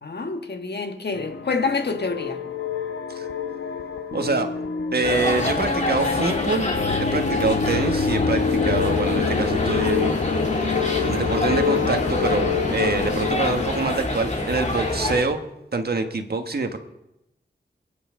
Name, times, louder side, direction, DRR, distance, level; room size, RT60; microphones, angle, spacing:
voice 1, 0.0-2.4, left 4 dB, 70° left, 1.4 m, -27 dB
sound 1, 1.1-13.7, left 5 dB, 90° left, 1.0 m, -26 dB
voice 2, 4.1-4.5 4.9-6.7 7.1-10.2 11.1-15.4 15.7-16.8, right 3 dB, 60° right, 1.4 m, -25 dB
sound 2, 5.0-15.2, left 1 dB, 40° left, 2.5 m, -27 dB
28.0 x 9.8 x 3.8 m
wide cardioid pair, 90°, 18 cm